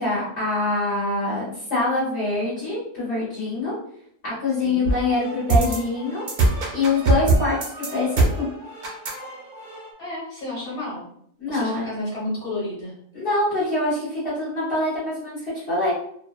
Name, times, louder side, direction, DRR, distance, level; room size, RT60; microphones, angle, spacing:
voice 1, 0.0-3.7 4.2-6.2 6.7-8.4 11.4-11.9 13.1-15.9, left 2 dB, 60° left, -9 dB, 1.1 m, -25 dB
voice 2, 4.6-4.9 10.0-11.1 11.5-12.9, left 1 dB, 30° left, -5 dB, 1.2 m, -31 dB
sound 1, 4.8-9.9, right 2 dB, 55° right, 0.5 m, -23 dB
2.7 x 2.1 x 2.3 m, 0.66 s
omnidirectional pair, 1.4 m